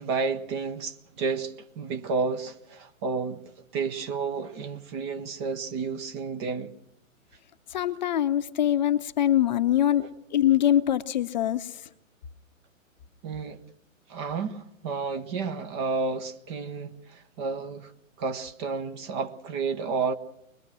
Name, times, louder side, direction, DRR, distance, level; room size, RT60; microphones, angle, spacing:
voice 1, 0.0-6.7 13.2-13.6 14.1-17.9 18.2-20.1, right 4 dB, 20° right, 0.8 m, -31 dB
voice 2, 7.7-10.0 10.3-11.8, left 11 dB, 35° left, 0.9 m, -23 dB
23.0 x 21.0 x 6.2 m
figure-of-eight pair, 120°, 40 cm